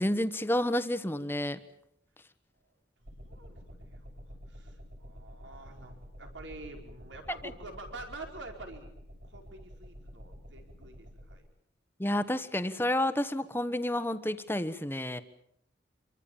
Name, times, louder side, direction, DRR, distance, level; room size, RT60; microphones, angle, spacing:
voice 1, 0.0-1.6 12.0-15.2, left 1 dB, 10° left, 11 dB, 1.2 m, -30 dB
sound 1, 3.0-11.3, equal, 60° right, 7.4 m, -49 dB
voice 2, 3.0-8.9 9.2-11.4, right 2 dB, 90° right, 3 dB, 4.8 m, -47 dB
27.0 x 24.0 x 7.2 m, 0.72 s
head